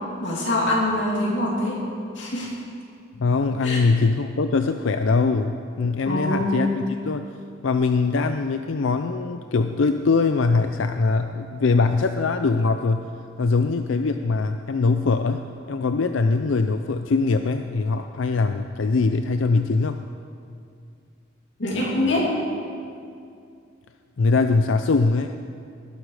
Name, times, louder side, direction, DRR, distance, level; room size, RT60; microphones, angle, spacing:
voice 1, 0.2-1.8 2.2-2.5 3.6-3.8 6.0-6.7 21.6-22.3, left 1 dB, 70° left, -4 dB, 3.0 m, -24 dB
voice 2, 3.2-7.3 7.6-13.0 13.4-15.4 15.7-20.0 24.2-25.3, left 4 dB, 85° left, 8 dB, 0.5 m, -22 dB
19.0 x 11.5 x 4.9 m, 2.4 s
head